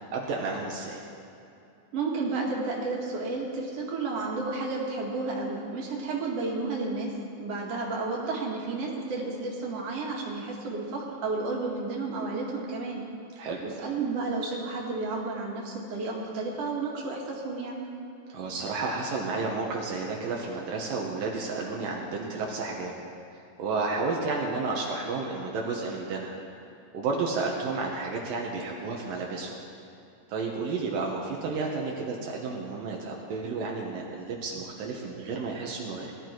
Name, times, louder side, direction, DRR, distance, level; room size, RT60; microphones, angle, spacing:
voice 1, 0.1-1.0 13.4-13.6 18.3-22.9 23.6-26.4 26.9-29.5 30.3-36.1, right 3 dB, 75° right, -1 dB, 2.9 m, -31 dB
voice 2, 1.9-7.1 7.4-13.0 13.6-17.9, right 3 dB, 45° right, -3 dB, 2.8 m, -32 dB
20.0 x 12.0 x 4.7 m, 2.7 s
omnidirectional pair, 4.2 m